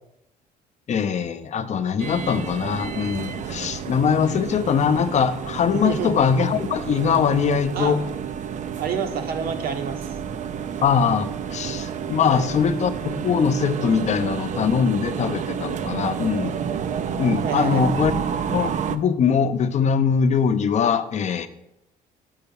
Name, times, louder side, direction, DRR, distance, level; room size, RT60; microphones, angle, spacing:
voice 1, 0.9-8.0 10.8-16.5 17.2-18.1 18.5-21.5, left 7 dB, 45° left, 10 dB, 0.7 m, -22 dB
sound 1, 2.0-19.0, right 7 dB, 45° right, 0.6 m, -30 dB
voice 2, 5.7-6.2 7.7-8.0 8.8-10.1 12.3-12.5 17.4-17.9, right 6 dB, 60° right, 7 dB, 1.2 m, -28 dB
6.8 x 5.7 x 6.9 m, 0.85 s
cardioid pair, 110°, 17 cm